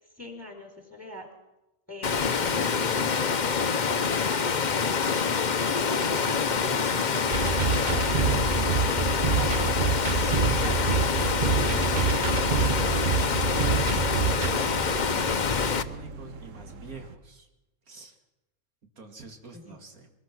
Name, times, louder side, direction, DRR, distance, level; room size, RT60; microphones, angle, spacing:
voice 1, 0.0-1.3 1.9-2.9 9.4-9.7 10.4-11.4 19.5-19.6, left 1 dB, 10° right, 3 dB, 4.3 m, -43 dB
Water, 2.0-15.8, left 5 dB, 40° left, 0.8 m, -26 dB
voice 2, 4.7-5.0 5.9-7.0 7.4-8.7 10.1-10.7 11.7-13.1 14.2-17.5 17.9-18.2 19.0-20.1, right 3 dB, 85° right, 4 dB, 2.9 m, -44 dB
sound 1, 7.3-14.5, right 5 dB, 40° right, 0.9 m, -26 dB
sound 2, 9.3-17.2, right 5 dB, 65° right, 1.4 m, -42 dB
23.5 x 20.0 x 6.1 m, 0.96 s
omnidirectional pair, 1.5 m